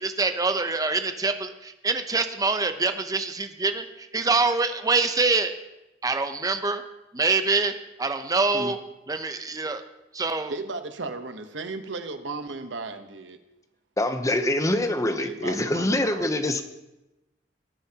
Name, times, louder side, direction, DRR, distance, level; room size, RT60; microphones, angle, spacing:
voice 1, 0.0-5.5 6.0-6.8 7.1-7.7 8.0-8.8 9.1-9.8 10.1-10.5, right 3 dB, 20° right, 8 dB, 0.7 m, -25 dB
voice 2, 10.5-13.4 15.2-16.3, right 3 dB, 85° right, 8 dB, 1.0 m, -35 dB
voice 3, 14.0-16.6, left 1 dB, 20° left, 8 dB, 0.7 m, -25 dB
18.0 x 9.6 x 2.9 m, 0.97 s
head